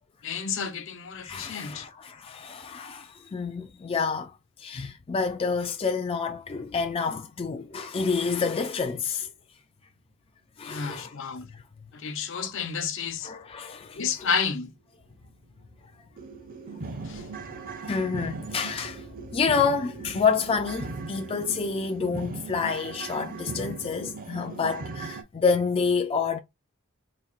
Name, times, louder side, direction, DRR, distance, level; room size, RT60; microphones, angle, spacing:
voice 1, 0.2-1.8 10.6-11.5 11.9-13.3 13.9-14.7 17.0-17.3, left 6 dB, 65° left, 0.7 m, -31 dB
voice 2, 1.2-9.3 10.6-11.1 11.5-11.6 12.3-12.5 13.2-14.3 17.6-19.0 19.3-26.4, left 5 dB, 25° left, 0.3 m, -28 dB
sound 1, 15.2-15.3 15.7-15.8 16.2-25.2, right 4 dB, 45° right, 0.6 m, -38 dB
4.2 x 2.7 x 2.4 m
head